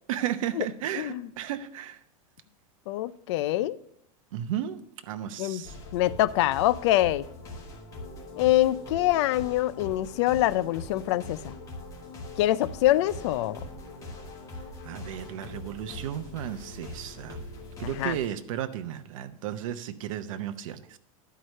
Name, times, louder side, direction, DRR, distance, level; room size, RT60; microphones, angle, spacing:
voice 1, 0.1-2.0 4.3-4.8 5.1-5.7 14.8-17.4 17.8-21.0, right 11 dB, 65° right, 0.8 m, -34 dB
voice 2, 1.0-1.3 2.9-3.8 5.4-5.6 5.9-7.3 8.4-11.5 12.4-13.6 17.8-18.2, left 15 dB, 50° left, 0.4 m, -25 dB
sound 1, 5.6-18.3, left 2 dB, 20° left, 1.4 m, -42 dB
11.5 x 4.7 x 6.4 m
supercardioid pair, 170°, 18 cm